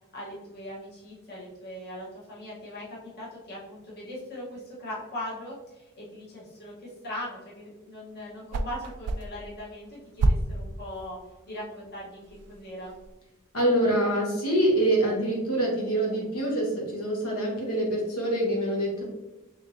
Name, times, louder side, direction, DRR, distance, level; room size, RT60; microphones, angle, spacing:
voice 1, 0.1-11.2 11.5-12.2 12.5-12.9, left 1 dB, 45° left, -6 dB, 1.1 m, -40 dB
sound 1, 8.1-13.1, right 2 dB, 90° right, 0.4 m, -32 dB
voice 2, 13.5-19.0, right 1 dB, 75° left, -2 dB, 1.3 m, -25 dB
3.7 x 3.5 x 2.6 m, 1.0 s
head